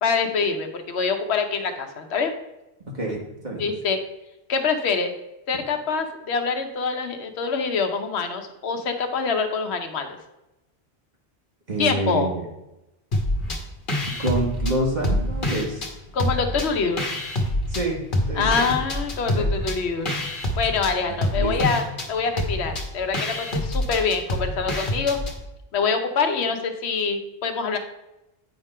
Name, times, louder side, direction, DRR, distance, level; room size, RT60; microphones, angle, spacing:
voice 1, 0.0-2.3 3.6-4.0 4.5-5.1 5.5-10.2 11.8-12.3 16.1-17.0 18.3-25.2 25.7-27.8, left 5 dB, 85° left, 6 dB, 1.1 m, -25 dB
voice 2, 2.9-3.6 11.7-12.4 14.2-15.9 17.7-18.0 18.3-18.7 19.3-19.6 21.0-21.7, right 1 dB, 45° right, -2 dB, 1.5 m, -28 dB
sound 1, 13.1-13.6 13.9-15.9 16.2-17.8 18.1-25.4, left 1 dB, 55° left, 1.2 m, -26 dB
8.8 x 3.7 x 5.4 m, 0.94 s
omnidirectional pair, 1.1 m